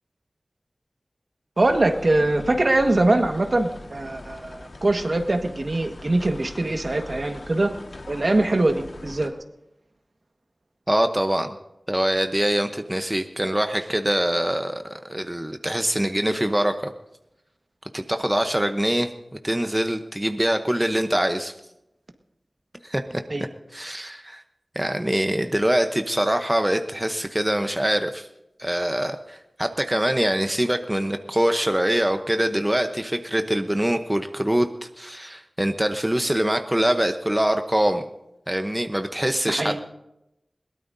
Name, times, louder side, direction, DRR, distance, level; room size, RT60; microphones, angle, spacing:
sound 1, 1.6-9.3, left 2 dB, 85° left, 1.6 m, -41 dB
voice 1, 1.6-7.7 8.1-9.3 23.3-23.5 39.5-39.8, right 2 dB, 60° right, 5 dB, 1.6 m, -22 dB
voice 2, 10.9-11.5 11.9-16.9 17.9-19.1 19.4-21.5 22.8-23.2 23.7-24.4 24.7-28.3 28.6-38.0 38.5-39.8, right 1 dB, 15° right, 7 dB, 0.9 m, -24 dB
21.5 x 17.5 x 2.7 m, 0.88 s
wide cardioid pair, 50°, 0 cm